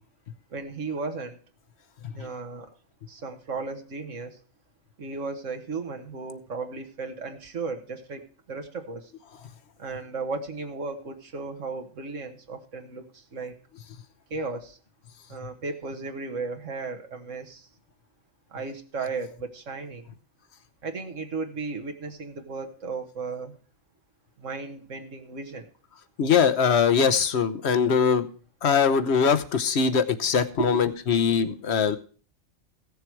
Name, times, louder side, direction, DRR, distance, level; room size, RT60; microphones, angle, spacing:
voice 1, 0.5-1.4 2.1-2.7 3.1-4.4 5.0-8.2 8.5-9.1 9.8-13.5 14.3-14.8 15.3-17.7 18.5-20.1 20.8-23.6 24.4-25.7 30.7-30.8, right 4 dB, 70° right, 5 dB, 1.8 m, -35 dB
voice 2, 26.2-28.3 28.6-32.0, left 6 dB, 60° left, 12 dB, 1.1 m, -22 dB
16.0 x 6.9 x 4.6 m, 0.41 s
omnidirectional pair, 1.3 m